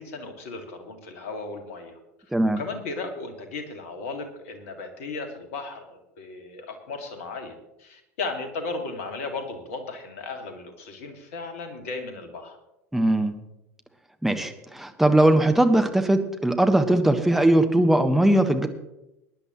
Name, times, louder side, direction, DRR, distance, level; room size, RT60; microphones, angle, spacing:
voice 1, 0.0-2.0 2.6-12.6, left 3 dB, 65° left, 5 dB, 2.2 m, -35 dB
voice 2, 12.9-13.3 14.2-18.7, right 1 dB, 5° right, 6 dB, 1.3 m, -20 dB
22.0 x 10.5 x 3.1 m, 0.91 s
figure-of-eight pair, 75°, 8 cm